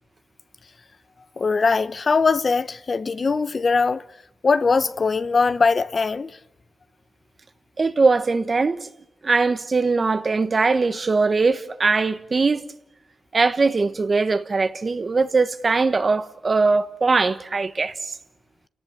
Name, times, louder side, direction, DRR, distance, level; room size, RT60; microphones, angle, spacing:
voice 1, 1.4-4.0 4.4-6.3, left 4 dB, 50° left, 0.9 m, -21 dB
voice 2, 7.8-8.8 9.2-12.6 13.3-17.9, right 4 dB, 45° right, 1.3 m, -21 dB
28.5 x 18.0 x 7.5 m
cardioid pair, 70°, 0 cm